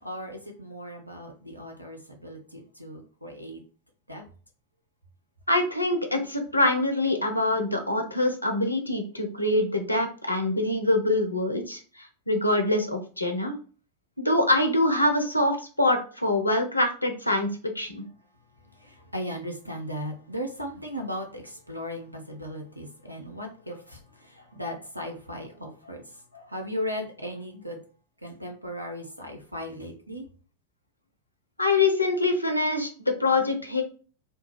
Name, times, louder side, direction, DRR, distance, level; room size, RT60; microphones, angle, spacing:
voice 1, 0.0-3.6 4.1-4.2 18.8-26.0 26.3-27.8 28.2-30.3, equal, 90° right, 2 dB, 0.6 m, -37 dB
voice 2, 5.5-13.6 14.2-18.0 31.6-33.8, left 2 dB, 85° left, 4 dB, 0.5 m, -25 dB
2.3 x 2.2 x 3.1 m, 0.38 s
figure-of-eight pair, 90°, 0 cm